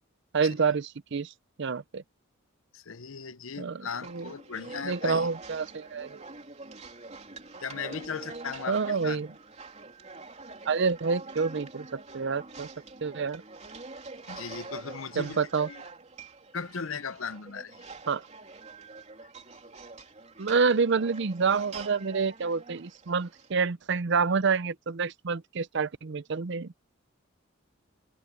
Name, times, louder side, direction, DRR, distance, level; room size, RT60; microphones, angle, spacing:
voice 1, 0.3-1.3 1.6-2.0 3.6-4.3 4.8-6.2 8.7-9.3 10.7-12.7 13.0-13.4 15.2-15.7 18.1-18.2 20.4-26.7, right 5 dB, 60° right, 0.6 m, -28 dB
voice 2, 2.7-5.3 7.6-9.2 14.3-15.8 16.5-17.9, left 6 dB, 80° left, 0.8 m, -37 dB
sound 1, 3.9-23.5, right 3 dB, 35° right, 3.4 m, -45 dB
head